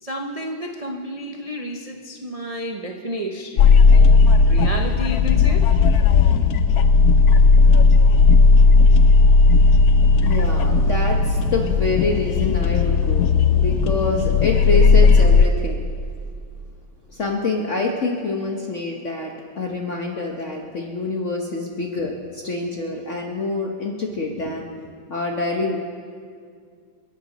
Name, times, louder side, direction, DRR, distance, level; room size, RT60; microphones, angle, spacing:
voice 1, 0.0-4.2 4.5-5.7, equal, 35° right, 1 dB, 0.5 m, -31 dB
sound 1, 3.6-15.5, left 4 dB, 65° left, 0.9 m, -14 dB
voice 2, 10.2-15.8 17.1-24.7 25.1-25.8, left 3 dB, 45° left, 1 dB, 1.2 m, -26 dB
29.0 x 11.0 x 4.1 m, 2.1 s
omnidirectional pair, 2.1 m